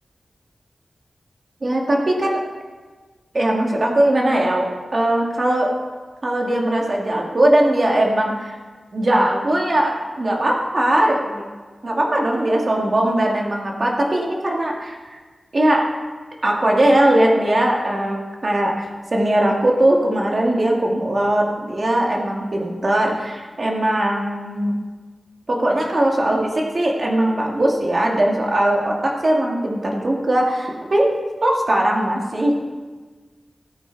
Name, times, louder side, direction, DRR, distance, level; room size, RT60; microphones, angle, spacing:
voice 1, 1.6-2.4 3.3-5.7 6.2-8.6 8.9-11.4 11.8-15.2 15.5-15.8 16.4-24.7 25.5-31.1 31.4-32.5, right 1 dB, 40° right, -1 dB, 2.0 m, -19 dB
16.5 x 9.5 x 4.0 m, 1.4 s
wide cardioid pair, 125°, 0 cm